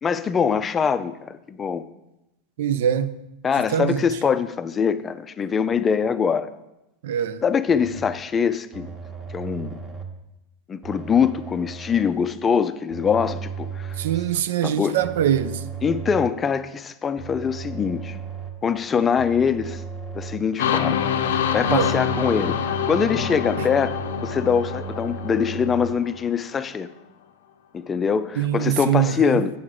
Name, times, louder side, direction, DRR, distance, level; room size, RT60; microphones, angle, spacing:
voice 1, 0.0-1.8 3.4-6.5 7.4-8.9 9.3-9.8 10.7-13.9 14.6-15.0 15.8-18.2 18.6-19.8 20.1-23.9 24.2-26.9 27.7-29.5, left 6 dB, 25° left, 0.4 m, -23 dB
voice 2, 2.6-3.2 3.7-4.0 7.0-7.4 14.0-15.6 21.7-21.9 28.4-29.4, right 10 dB, 75° right, 0.4 m, -23 dB
sound 1, 7.7-8.2 8.7-10.2 10.8-12.3 12.9-14.4 15.0-16.5 17.2-18.7 19.2-20.6 21.2-25.9, right 5 dB, 25° right, 1.0 m, -36 dB
sound 2, 20.6-26.3, left 8 dB, 85° left, 0.5 m, -26 dB
7.7 x 3.6 x 6.5 m
hypercardioid pair, 115°, 0 cm